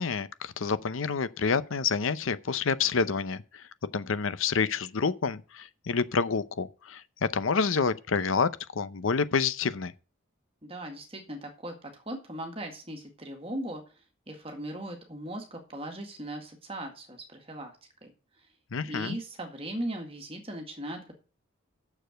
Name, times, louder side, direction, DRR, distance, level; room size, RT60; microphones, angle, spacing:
voice 1, 0.0-3.6 3.9-7.0 7.3-9.9 18.7-19.2, left 5 dB, 75° left, 0.7 m, -28 dB
voice 2, 10.6-13.8 14.3-17.7 18.0-18.1 18.9-21.1, right 1 dB, 30° right, 1.9 m, -38 dB
7.0 x 6.8 x 7.7 m
head